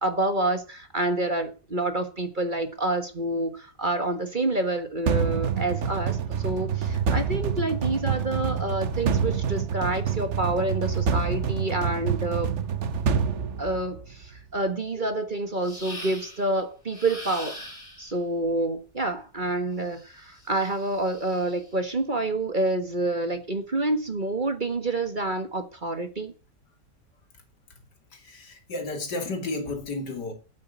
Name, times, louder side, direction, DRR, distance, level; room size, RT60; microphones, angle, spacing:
voice 1, 0.0-12.5 13.6-17.7 18.0-26.3, right 2 dB, 30° right, 1.5 m, -28 dB
sound 1, 5.1-14.2, right 7 dB, 50° right, 1.2 m, -27 dB
sound 2, 15.6-16.5 16.9-18.1 19.8-21.7, equal, 40° left, 5.8 m, -42 dB
voice 2, 28.1-30.3, left 2 dB, 85° left, 3.1 m, -32 dB
9.5 x 8.5 x 8.2 m
omnidirectional pair, 1.8 m